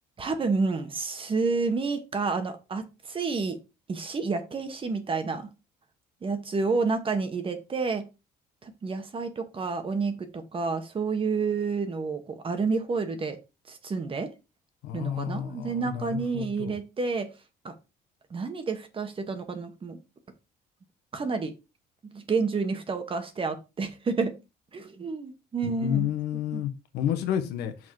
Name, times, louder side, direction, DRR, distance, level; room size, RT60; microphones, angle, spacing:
voice 1, 0.2-3.6 3.9-5.4 6.2-8.0 8.6-13.4 13.7-14.3 14.9-17.3 17.6-17.7 18.3-20.0 21.1-21.5 22.1-24.3 24.7-26.1 26.5-26.6, right 4 dB, 30° right, 8 dB, 1.4 m, -29 dB
voice 2, 14.8-16.8 25.6-27.9, left 10 dB, 85° left, 8 dB, 1.1 m, -31 dB
6.2 x 4.1 x 4.8 m, 0.27 s
cardioid pair, 110°, 17 cm